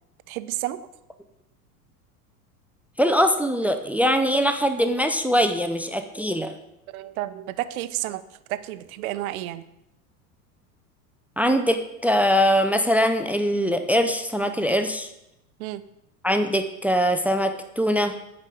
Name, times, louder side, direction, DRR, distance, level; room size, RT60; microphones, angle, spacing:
voice 1, 0.3-0.8 6.9-8.2 8.5-9.7 15.6-15.8, right 15 dB, 65° right, 14 dB, 0.7 m, -31 dB
voice 2, 3.0-6.6 11.4-15.1 16.2-18.1, equal, 5° right, 8 dB, 0.3 m, -22 dB
8.9 x 5.3 x 6.2 m, 0.87 s
hypercardioid pair, 85°, 45 cm